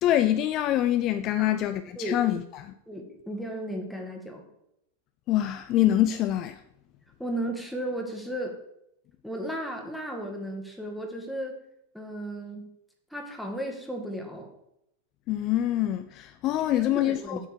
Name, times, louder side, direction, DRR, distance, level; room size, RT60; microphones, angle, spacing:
voice 1, 0.0-2.7 5.3-6.6 15.3-17.5, left 13 dB, 35° left, 0.4 m, -25 dB
voice 2, 2.9-4.5 7.2-8.6 9.2-11.6 11.9-12.7 13.1-14.5 16.7-17.5, right 1 dB, ahead, 1.6 m, -34 dB
7.9 x 4.2 x 6.6 m
figure-of-eight pair, 90°, 0 cm